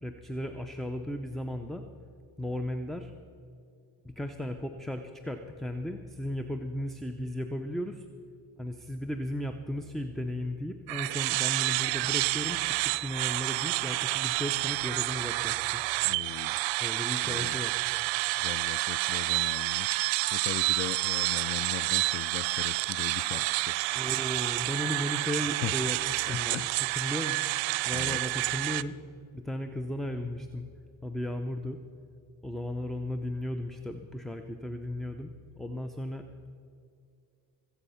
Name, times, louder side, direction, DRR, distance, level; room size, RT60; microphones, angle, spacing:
voice 1, 0.0-1.8 2.4-3.1 4.0-8.1 8.6-15.8 16.8-17.8 23.9-26.7 26.9-29.0 29.3-30.7 31.0-31.8 32.4-36.3, left 1 dB, ahead, 7 dB, 0.6 m, -35 dB
sound 1, 10.9-28.8, right 21 dB, 85° right, 0.5 m, -29 dB
voice 2, 16.0-16.6 17.2-17.6 18.4-19.9 20.3-23.8 25.6-25.7 26.3-26.7 27.9-28.2, left 13 dB, 35° left, 16 dB, 0.4 m, -38 dB
21.5 x 8.3 x 5.7 m, 2.4 s
cardioid pair, 90°, 44 cm